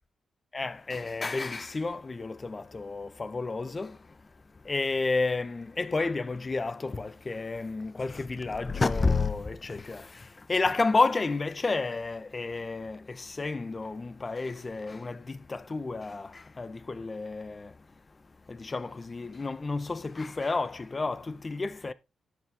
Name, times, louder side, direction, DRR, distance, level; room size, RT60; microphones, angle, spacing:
voice 1, 0.5-3.9 4.7-10.0 10.5-13.0 13.4-16.3 16.6-17.7 18.6-21.9, left 3 dB, 30° left, 1.2 m, -30 dB
11.5 x 9.8 x 3.7 m
cardioid pair, 85°, 0 cm